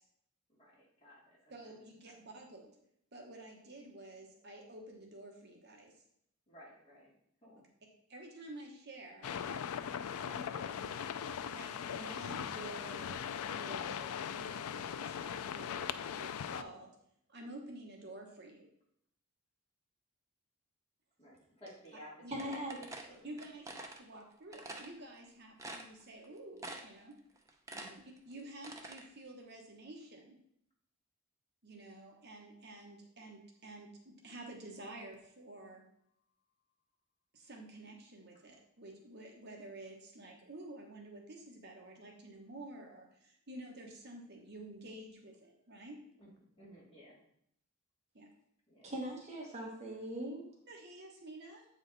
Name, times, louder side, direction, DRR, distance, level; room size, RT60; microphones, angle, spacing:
voice 1, 0.5-1.4 1.6-1.7 6.5-7.1 7.4-7.6 21.2-23.3 27.7-28.0 46.2-46.3 46.6-47.2 48.7-48.9, equal, 25° left, -5 dB, 2.6 m, -56 dB
voice 2, 1.5-2.7 3.1-5.9 8.1-9.3 10.2-10.9 11.5-13.2 13.5-16.9 17.3-18.7 22.2-22.5 23.2-27.2 28.3-30.4 31.6-35.8 37.3-46.0 48.1-48.3 50.7-51.6, right 1 dB, 50° right, 1 dB, 1.1 m, -50 dB
sound 1, 9.2-16.6, left 8 dB, 80° left, 0.4 m, -39 dB
voice 3, 22.3-22.8 48.8-50.5, right 1 dB, 30° right, -1 dB, 1.3 m, -40 dB
sound 2, 22.4-24.0 24.5-24.9 25.3-25.4 25.6-26.3 26.6-27.0 27.4-29.0, right 2 dB, 15° right, 0.6 m, -46 dB
8.1 x 4.9 x 4.0 m, 0.71 s
head